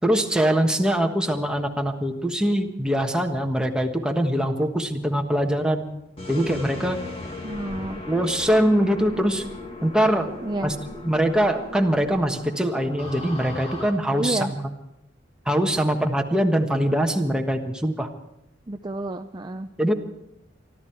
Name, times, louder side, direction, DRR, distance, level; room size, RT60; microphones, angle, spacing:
voice 1, 0.0-5.9 6.3-7.0 8.1-9.4 9.8-10.3 10.6-10.7 11.0-14.6 15.5-18.1 19.8-19.9, equal, 5° right, 3 dB, 1.3 m, -22 dB
sound 1, 6.2-13.9, left 2 dB, 30° left, 2.1 m, -38 dB
voice 2, 7.4-8.0 10.4-10.7 14.2-14.5 18.7-19.7, right 2 dB, 25° right, 7 dB, 0.5 m, -30 dB
24.5 x 13.0 x 4.6 m, 0.86 s
head